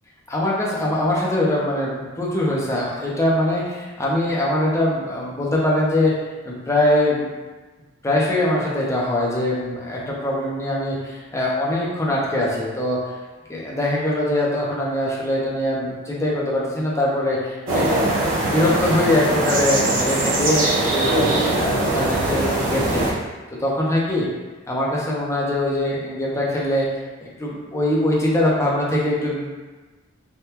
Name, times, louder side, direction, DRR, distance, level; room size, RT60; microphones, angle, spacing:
voice 1, 0.3-6.1 6.4-7.3 8.0-13.0 13.5-21.1 21.5-23.2 23.6-24.3 24.7-26.9 27.2-29.5, left 1 dB, 15° left, -5 dB, 0.5 m, -22 dB
sound 1, 17.7-23.1, right 1 dB, 70° right, 0.8 m, -21 dB
3.4 x 2.2 x 2.8 m, 1.3 s
head